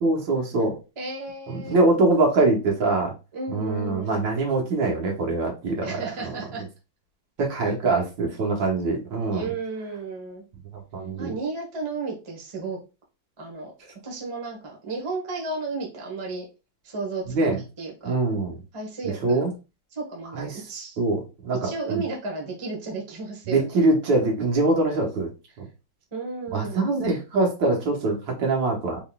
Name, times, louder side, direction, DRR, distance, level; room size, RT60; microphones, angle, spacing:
voice 1, 0.0-0.8 1.5-3.1 3.5-6.7 7.4-9.5 10.9-11.4 17.3-17.6 18.0-18.6 19.0-19.5 20.3-20.7 21.0-22.0 23.5-25.3 25.6-25.7 26.5-29.0, right 2 dB, 70° right, 0 dB, 1.7 m, -24 dB
voice 2, 1.0-1.8 3.3-4.2 5.8-6.6 9.3-10.4 11.2-12.8 13.4-13.7 14.0-14.6 14.8-16.4 16.9-17.5 17.8-18.1 18.7-19.4 20.0-20.9 21.6-23.7 26.1-26.9, right 3 dB, 25° right, -1 dB, 0.8 m, -33 dB
3.9 x 3.7 x 2.3 m, 0.29 s
omnidirectional pair, 2.2 m